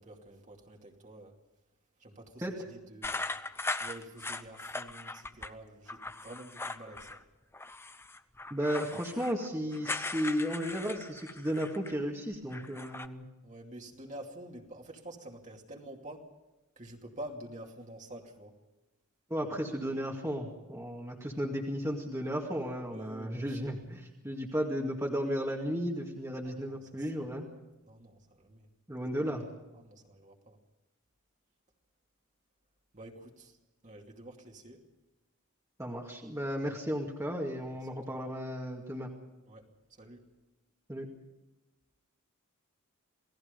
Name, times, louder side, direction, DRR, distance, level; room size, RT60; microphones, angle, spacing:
voice 1, 0.0-1.3 2.0-3.4 3.8-7.2 13.4-16.3 16.8-18.5 22.9-23.7 26.4-27.1 27.8-28.7 29.7-30.6 32.9-33.6 33.8-34.8 37.9-38.2 39.5-40.3, right 1 dB, 35° right, 1 dB, 2.6 m, -48 dB
sound 1, 3.0-5.5 5.9-7.2 7.5-12.0 12.3-13.1, left 2 dB, 10° left, 0.7 m, -39 dB
voice 2, 8.5-13.3 19.3-27.5 28.9-29.4 35.8-39.1 40.9-41.1, equal, 15° right, -1 dB, 2.2 m, -34 dB
28.5 x 18.5 x 5.3 m, 1.0 s
head